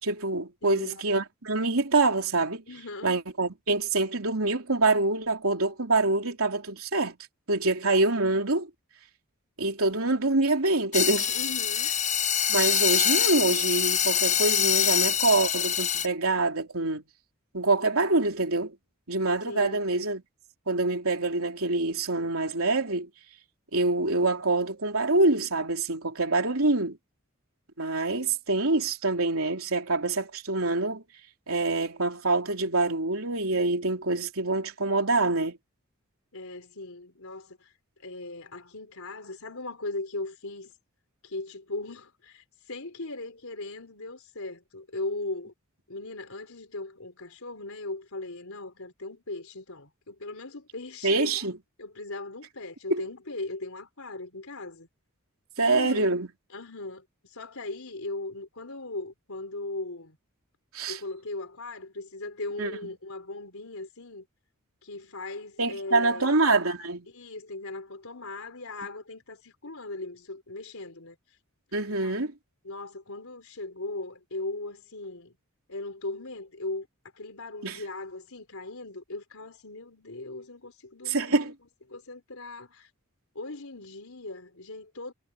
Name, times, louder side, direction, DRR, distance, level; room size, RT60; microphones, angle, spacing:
voice 1, 0.0-2.6 3.0-7.2 7.5-8.7 9.6-11.3 12.5-17.0 17.5-18.7 19.1-20.2 20.7-23.1 23.7-27.0 27.8-31.0 31.5-35.6 51.0-51.5 52.9-53.0 55.6-56.3 60.7-61.0 62.6-62.7 65.6-67.1 71.7-72.3 77.6-77.8 81.1-81.5, right 2 dB, 75° right, 3.5 m, -25 dB
voice 2, 0.6-1.0 2.7-3.2 11.3-11.9 19.5-19.9 28.2-28.3 36.3-37.7 38.0-40.7 41.2-45.5 45.9-51.5 51.8-54.9 55.6-56.1 56.5-60.2 60.9-64.3 64.8-66.4 67.1-71.2 71.8-72.2 72.6-75.4 75.7-76.9 77.1-81.5 81.9-82.9 83.3-85.1, left 2 dB, 75° left, 4.3 m, -38 dB
sound 1, 10.9-16.1, left 9 dB, 35° left, 1.2 m, -25 dB
head